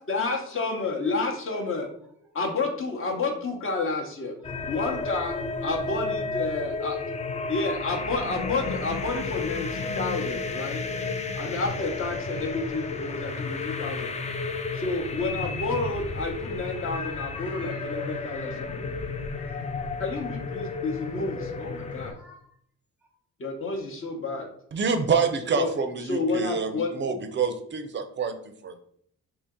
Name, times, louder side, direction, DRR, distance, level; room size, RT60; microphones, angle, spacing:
voice 1, 0.0-1.9 2.3-4.3 4.7-5.3 5.6-7.0 7.5-10.8 11.3-14.1 14.7-18.5 20.0-22.2 23.4-24.5 25.6-25.7 26.0-26.9, left 3 dB, 45° left, 2 dB, 0.9 m, -30 dB
sound 1, 4.4-22.1, left 4 dB, 25° left, 0.3 m, -32 dB
voice 2, 12.5-13.2 16.4-16.5 16.9-18.9 19.2-20.0 20.5-20.7 21.3-22.6, left 2 dB, 5° right, -1 dB, 0.8 m, -51 dB
voice 3, 24.7-28.4 28.6-28.8, right 5 dB, 40° right, 8 dB, 0.5 m, -27 dB
2.8 x 2.7 x 3.6 m, 0.65 s
cardioid pair, 90°, 30 cm